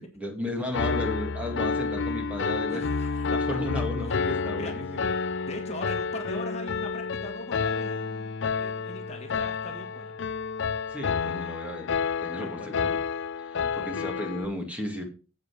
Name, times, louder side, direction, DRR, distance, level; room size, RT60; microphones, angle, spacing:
voice 1, 0.0-2.9 3.3-5.1 10.9-13.0 13.4-15.0, left 1 dB, 5° right, 2 dB, 2.1 m, -34 dB
Piano, 0.7-14.4, left 5 dB, 60° left, 0.5 m, -30 dB
voice 2, 2.7-3.3 4.0-4.2 4.6-4.7 5.4-10.1 12.4-12.7 13.6-13.9, left 1 dB, 30° left, 3 dB, 1.7 m, -41 dB
9.4 x 8.0 x 4.7 m, 0.34 s
head